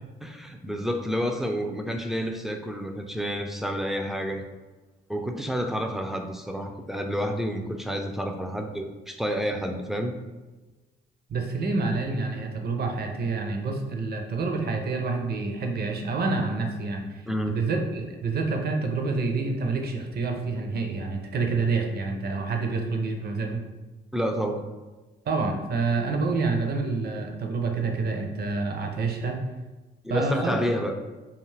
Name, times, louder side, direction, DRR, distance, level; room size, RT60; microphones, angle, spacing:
voice 1, 0.2-4.4 5.1-10.1 17.3-17.6 24.1-24.6 30.0-31.0, equal, ahead, 4 dB, 0.3 m, -29 dB
voice 2, 11.3-23.6 25.3-29.4 30.1-30.5, right 3 dB, 55° right, 3 dB, 0.5 m, -28 dB
2.4 x 2.4 x 3.2 m, 1.2 s
supercardioid pair, 60°, 20 cm